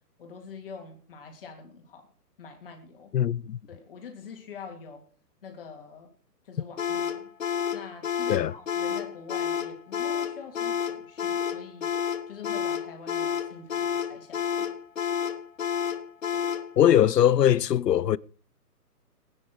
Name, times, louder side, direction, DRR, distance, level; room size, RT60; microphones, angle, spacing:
voice 1, 0.2-2.1 2.4-3.1 3.7-5.0 5.4-6.1 6.4-7.3 7.7-11.9 12.3-14.7 16.3-16.5, left 5 dB, 35° left, 3.2 m, -45 dB
voice 2, 3.1-3.6 8.3-8.5 16.8-18.2, left 10 dB, 80° left, 0.7 m, -21 dB
sound 1, 6.8-16.7, left 8 dB, 50° left, 1.5 m, -29 dB
19.0 x 9.9 x 4.8 m
hypercardioid pair, 170°, 48 cm